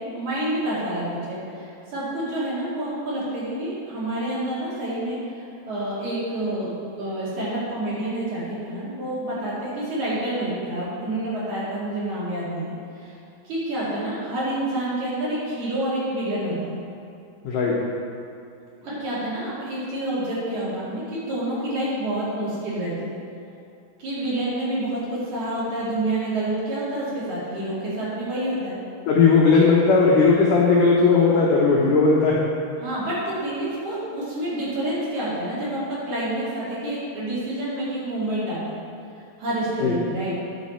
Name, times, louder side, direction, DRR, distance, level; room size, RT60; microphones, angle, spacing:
voice 1, 0.0-13.2 13.5-16.7 18.8-23.1 24.0-28.8 32.8-35.8 36.1-38.8 39.4-40.4, right 1 dB, 50° right, -9 dB, 3.4 m, -28 dB
voice 2, 29.1-32.4 39.8-39.9, left 4 dB, 70° left, -4 dB, 2.1 m, -17 dB
9.8 x 7.6 x 4.3 m, 2.7 s
omnidirectional pair, 4.6 m